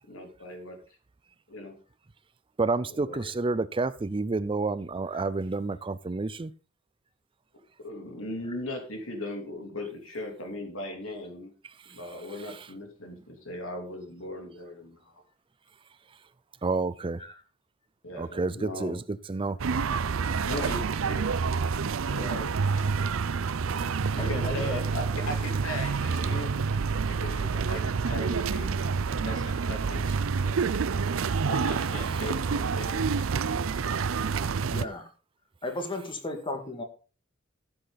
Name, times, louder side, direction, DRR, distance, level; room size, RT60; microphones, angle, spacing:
voice 1, 0.1-0.8 1.5-1.8 2.9-3.3 7.8-11.5 11.9-15.1 18.0-19.0 20.4-21.2 22.1-22.6 24.1-30.7 31.5-33.1, left 1 dB, 90° left, 3.3 m, -38 dB
voice 2, 2.6-6.5 11.8-12.0 12.4-12.7 16.6-17.2 18.1-19.6 23.9-24.0 32.0-32.3, right 3 dB, 25° right, 0.5 m, -30 dB
sound 1, 19.6-34.8, right 5 dB, 85° right, 0.5 m, -28 dB
voice 3, 24.2-24.7 34.7-35.1 35.6-36.8, left 2 dB, 25° left, 2.1 m, -34 dB
14.5 x 7.8 x 4.1 m
head